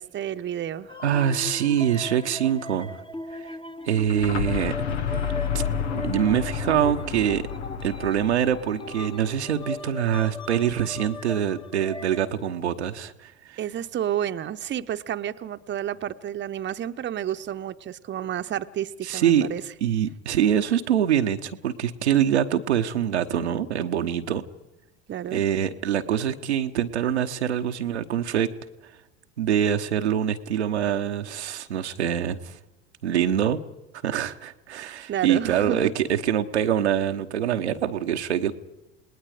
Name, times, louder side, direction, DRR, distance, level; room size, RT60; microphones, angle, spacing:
voice 1, 0.0-1.0 13.6-19.6 25.1-25.4 35.1-35.8, right 10 dB, 35° right, 9 dB, 0.9 m, -30 dB
sound 1, 0.9-12.3, left 1 dB, 15° left, 1.3 m, -38 dB
voice 2, 1.0-2.9 3.3-3.5 3.9-4.7 5.1-5.6 5.9-7.4 7.8-13.6 19.0-19.5 19.8-24.4 25.3-28.5 29.4-32.6 33.0-33.6 34.0-38.5, right 9 dB, 85° right, 6 dB, 1.0 m, -24 dB
sound 2, 3.9-9.7, left 7 dB, 80° left, 1.5 m, -31 dB
28.5 x 19.5 x 5.0 m, 0.97 s
hypercardioid pair, 75°, 33 cm